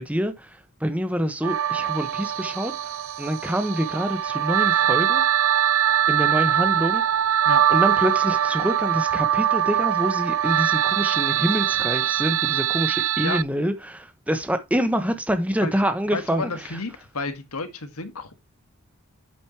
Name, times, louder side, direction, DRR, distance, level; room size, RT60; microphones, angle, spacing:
voice 1, 0.0-2.9 3.2-5.2 6.1-7.0 7.7-16.7, equal, 5° right, 1.1 m, -26 dB
sound 1, 1.4-13.4, right 10 dB, 65° right, 0.4 m, -22 dB
voice 2, 16.1-18.3, left 3 dB, 85° left, 1.6 m, -31 dB
8.2 x 8.2 x 2.9 m
head